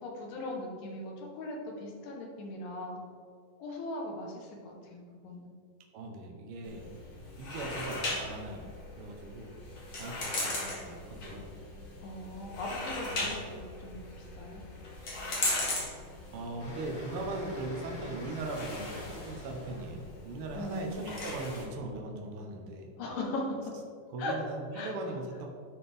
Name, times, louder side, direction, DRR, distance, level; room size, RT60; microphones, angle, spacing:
voice 1, 0.0-3.0 3.6-5.5 12.0-14.6 20.5-20.9 23.0-23.7 24.2-24.3 24.7-25.2, left 2 dB, 90° left, 0 dB, 2.7 m, -39 dB
voice 2, 5.9-6.9 7.4-8.7 8.9-9.5 10.0-11.5 12.5-12.8 13.2-13.4 16.3-22.9 24.1-25.5, right 2 dB, 85° right, 1 dB, 1.2 m, -39 dB
sound 1, 6.6-21.6, left 2 dB, 50° left, 1.1 m, -39 dB
sound 2, 16.6-21.6, left 1 dB, 70° left, 3.2 m, -47 dB
10.5 x 4.3 x 3.4 m, 2.1 s
omnidirectional pair, 3.8 m